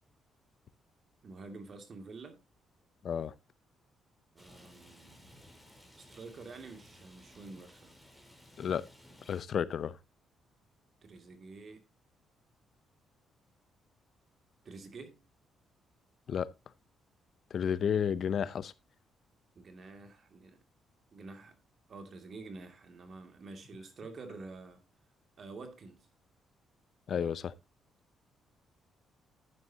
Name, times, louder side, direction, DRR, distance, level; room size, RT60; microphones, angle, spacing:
voice 1, 1.2-2.4 4.3-5.3 6.1-7.9 11.0-11.8 14.6-15.2 17.7-17.9 19.5-20.6 21.1-21.6 21.9-24.8 25.4-26.1, right 3 dB, 50° right, 2.4 m, -48 dB
Rain, 4.4-9.4, equal, 5° right, 4.1 m, -57 dB
voice 2, 9.3-10.0 16.3-16.5 17.5-18.7 27.1-27.5, left 8 dB, 55° left, 0.7 m, -31 dB
11.0 x 9.3 x 2.8 m
cardioid pair, 90°, 0 cm